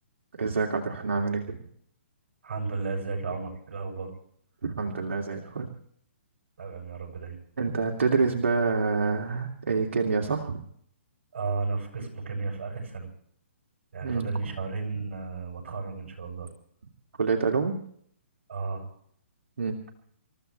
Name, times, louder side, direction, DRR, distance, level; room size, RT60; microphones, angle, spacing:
voice 1, 0.4-1.6 4.6-5.7 7.6-10.6 14.0-14.3 17.2-17.8 19.6-19.8, right 4 dB, 80° right, 1 dB, 2.7 m, -27 dB
voice 2, 2.4-4.1 6.6-7.4 11.3-13.1 13.9-16.5 18.5-18.9, right 4 dB, 65° right, 2 dB, 7.9 m, -33 dB
28.0 x 15.0 x 3.4 m, 0.64 s
hypercardioid pair, 145°, 7 cm